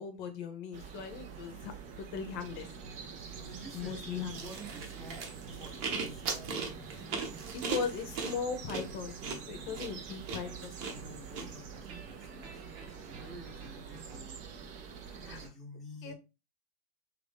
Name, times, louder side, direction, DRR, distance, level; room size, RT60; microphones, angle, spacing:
voice 1, 0.0-1.7 2.0-2.7 3.7-4.4 7.5-9.2 9.5-10.7 15.2-15.4 16.0-16.1, left 6 dB, 50° left, 8 dB, 0.7 m, -38 dB
sound 1, 0.7-15.5, right 6 dB, 25° right, 0.4 m, -46 dB
sound 2, 2.4-14.2, right 3 dB, 85° right, 1.2 m, -52 dB
voice 2, 3.4-5.3 5.6-6.7 9.6-10.2 10.9-14.4 15.2-16.1, equal, ahead, -3 dB, 0.8 m, -51 dB
sound 3, 4.3-11.4, right 4 dB, 40° right, 0.8 m, -38 dB
3.0 x 2.5 x 3.4 m, 0.28 s
supercardioid pair, 150°, 32 cm